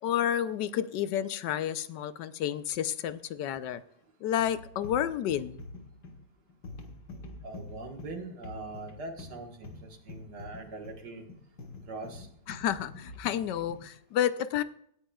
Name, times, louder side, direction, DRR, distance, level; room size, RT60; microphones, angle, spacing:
voice 1, 0.0-3.8 4.2-5.6 12.5-14.6, left 10 dB, 85° left, 13 dB, 1.3 m, -30 dB
sound 1, 4.4-14.0, left 2 dB, 70° left, 2.1 m, -46 dB
voice 2, 7.4-11.3 11.8-12.3, right 3 dB, 70° right, 3 dB, 2.1 m, -42 dB
17.0 x 10.5 x 2.3 m, 0.67 s
omnidirectional pair, 1.8 m